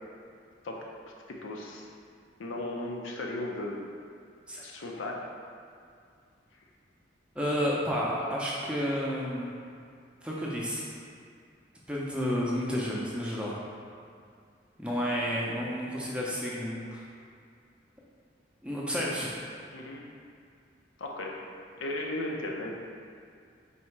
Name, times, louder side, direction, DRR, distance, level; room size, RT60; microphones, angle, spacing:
voice 1, 1.3-1.9 2.4-3.8 4.6-5.2 19.7-20.0 21.0-21.4 21.8-22.7, left 1 dB, 85° left, -1 dB, 0.6 m, -35 dB
voice 2, 7.3-9.5 10.2-10.9 11.9-13.6 14.8-17.1 18.6-19.4, equal, 5° right, -5 dB, 0.5 m, -31 dB
4.1 x 2.8 x 4.5 m, 2.3 s
head